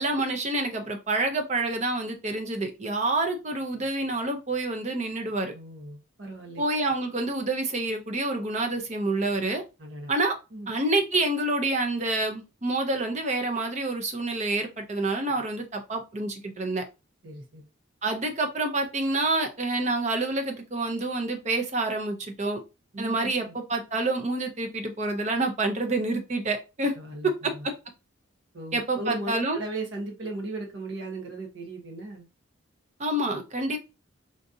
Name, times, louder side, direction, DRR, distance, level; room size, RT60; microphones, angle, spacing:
voice 1, 0.0-5.5 6.6-9.6 10.1-10.3 10.7-16.8 18.0-22.6 23.0-26.9 27.2-27.5 28.7-29.6 33.0-33.8, right 2 dB, 35° right, 4 dB, 0.6 m, -27 dB
voice 2, 5.5-6.6 9.8-10.1 10.5-10.7 17.2-17.6 22.9-23.5 27.0-27.7 28.5-32.3, right 2 dB, 60° right, 1 dB, 0.9 m, -37 dB
3.8 x 2.5 x 2.6 m, 0.27 s
head